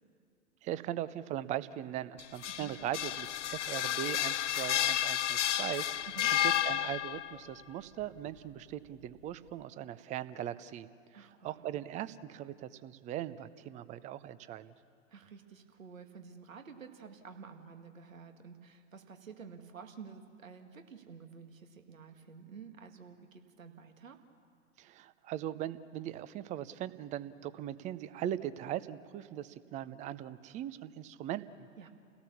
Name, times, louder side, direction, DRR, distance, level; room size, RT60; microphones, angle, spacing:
voice 1, 0.6-10.9 11.1-14.7 24.8-31.7, right 12 dB, 20° right, 16 dB, 0.6 m, -40 dB
sound 1, 2.2-7.4, left 12 dB, 60° left, 0.8 m, -31 dB
voice 2, 11.1-11.8 15.1-24.2 31.8-31.9, right 6 dB, 70° right, 6 dB, 2.1 m, -51 dB
30.0 x 17.0 x 7.1 m, 2.3 s
figure-of-eight pair, 105°, 41 cm